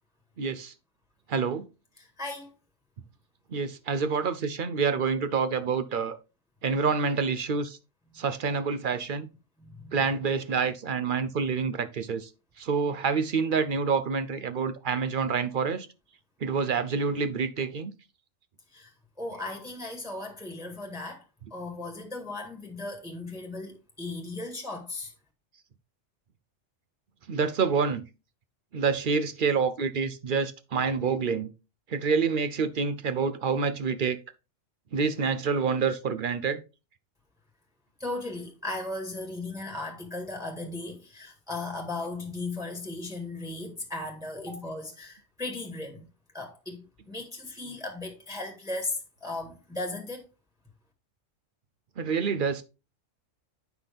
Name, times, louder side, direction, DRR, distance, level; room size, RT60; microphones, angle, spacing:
voice 1, 0.4-0.7 1.3-1.7 3.5-6.2 6.6-7.8 8.2-9.3 9.9-12.3 12.6-15.9 16.4-17.9 27.3-28.0 28.7-31.5 31.9-34.2 34.9-36.6 52.0-52.6, right 5 dB, 50° right, 0.7 m, -27 dB
voice 2, 2.0-2.5 9.6-10.0 18.7-18.9 19.2-21.2 21.5-25.1 38.0-46.0 46.3-50.3, left 2 dB, 5° right, 1.6 m, -36 dB
8.1 x 5.8 x 3.4 m
omnidirectional pair, 1.3 m